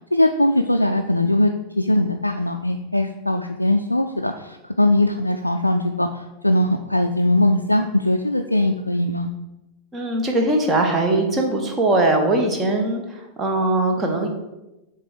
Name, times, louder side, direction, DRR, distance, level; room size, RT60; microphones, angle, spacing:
voice 1, 0.0-9.3, left 1 dB, 85° left, 4 dB, 0.3 m, -20 dB
voice 2, 9.9-14.3, right 2 dB, 20° right, 3 dB, 1.2 m, -21 dB
7.4 x 3.2 x 4.9 m, 1.0 s
figure-of-eight pair, 90°, 0 cm